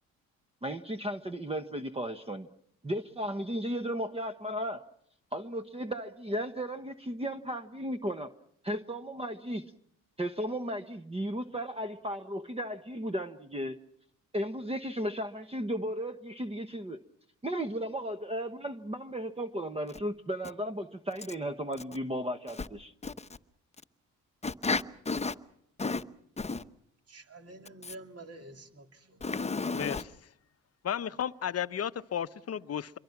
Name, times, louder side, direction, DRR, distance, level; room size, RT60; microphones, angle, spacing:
voice 1, 0.6-2.5 2.8-4.8 5.3-8.3 8.6-9.7 10.2-13.8 14.3-17.0 17.4-22.9, equal, 15° right, 1.1 m, -35 dB
voice 2, 24.4-25.3 25.8-26.0 26.4-26.6 29.2-30.0, left 4 dB, 20° left, 1.0 m, -32 dB
voice 3, 27.1-29.3, right 2 dB, 45° right, 3.0 m, -49 dB
voice 4, 30.8-33.0, left 9 dB, 45° left, 0.8 m, -33 dB
26.5 x 23.0 x 6.0 m
cardioid pair, 80°, 34 cm